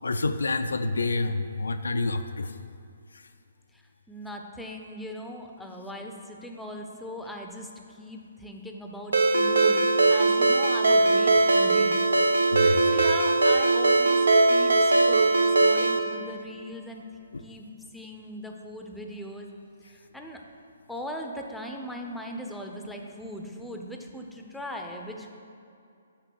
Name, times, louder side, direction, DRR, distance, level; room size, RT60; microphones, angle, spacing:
voice 1, 0.0-2.5 12.5-13.1 17.3-17.4, left 3 dB, 70° left, 9 dB, 0.3 m, -28 dB
voice 2, 4.1-7.7 7.9-12.0 12.9-14.2 14.5-15.3 15.6-17.0 17.4-17.7 17.9-19.5 20.1-20.4 20.9-25.3, equal, ahead, 2 dB, 0.6 m, -39 dB
Ringtone, 9.1-16.0, right 2 dB, 70° right, 0.6 m, -20 dB
5.8 x 5.2 x 6.3 m, 2.5 s
figure-of-eight pair, 130°, 0 cm